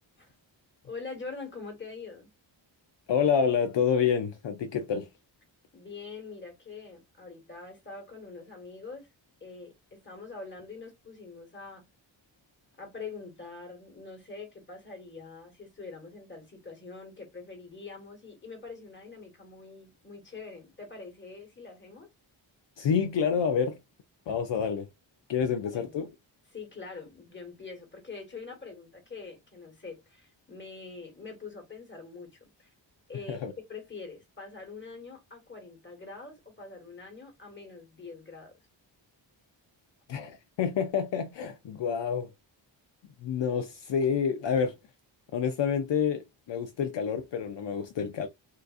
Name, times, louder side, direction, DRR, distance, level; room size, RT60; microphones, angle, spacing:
voice 1, 0.8-2.3 5.7-9.1 9.4-11.9 12.8-22.1 25.7-26.1 26.5-32.7 33.1-33.4 33.7-38.5, left 4 dB, 25° left, 1.4 m, -44 dB
voice 2, 3.1-5.1 22.8-23.8 24.3-24.9 25.3-26.1 33.3-33.5 40.1-42.3 43.2-44.7 45.3-48.3, left 7 dB, 65° left, 0.6 m, -28 dB
3.9 x 2.5 x 2.4 m
wide cardioid pair, 175°, 47 cm